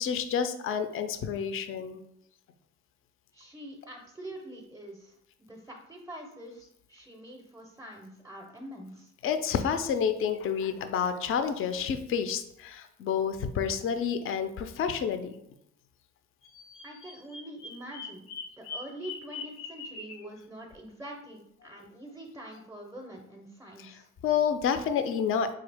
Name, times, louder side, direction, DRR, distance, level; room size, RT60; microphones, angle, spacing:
voice 1, 0.0-2.0 9.2-15.3 23.8-25.5, left 7 dB, 45° left, 9 dB, 0.4 m, -29 dB
voice 2, 3.3-9.1 16.8-24.1, right 1 dB, 10° right, 0 dB, 0.5 m, -45 dB
Bird vocalization bird call bird song, 16.4-20.3, left 4 dB, 90° left, 0.6 m, -42 dB
3.8 x 2.3 x 3.3 m, 0.74 s
cardioid pair, 90°, 30 cm